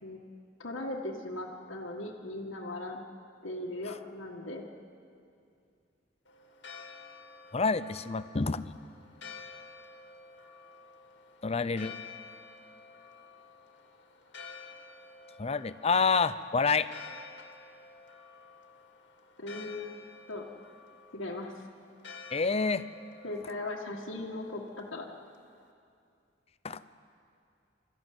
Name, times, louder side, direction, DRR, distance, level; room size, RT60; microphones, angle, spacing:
voice 1, 0.6-3.0 3.4-4.6 19.4-20.5 21.1-21.7 23.2-25.1, left 2 dB, 85° left, -2 dB, 1.8 m, -38 dB
Church bell, 6.2-25.7, left 5 dB, 65° left, 2.0 m, -51 dB
voice 2, 7.5-8.7 11.4-11.9 15.4-16.9 22.3-22.8 26.6-26.8, left 4 dB, 30° left, 14 dB, 0.6 m, -28 dB
26.0 x 13.5 x 9.4 m, 2.5 s
head